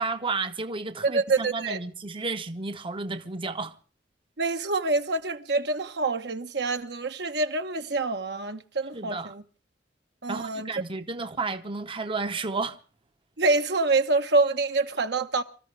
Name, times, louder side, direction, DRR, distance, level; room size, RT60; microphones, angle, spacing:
voice 1, 0.0-3.8 8.9-9.3 10.3-12.8, right 3 dB, 30° right, 0.9 m, -32 dB
voice 2, 1.0-1.8 4.4-9.4 10.2-10.7 13.4-15.4, right 3 dB, 70° right, 1.2 m, -26 dB
26.0 x 14.0 x 3.3 m
head